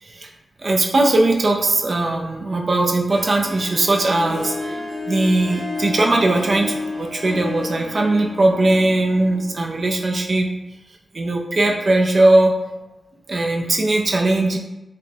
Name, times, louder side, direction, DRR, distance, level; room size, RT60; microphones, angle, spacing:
voice 1, 0.6-10.5 11.1-12.5 13.3-14.6, right 2 dB, 50° right, 0 dB, 0.5 m, -19 dB
Harp, 3.1-10.0, left 2 dB, 70° right, 1.1 m, -31 dB
3.1 x 2.3 x 4.1 m, 0.98 s
wide cardioid pair, 90°, 0 cm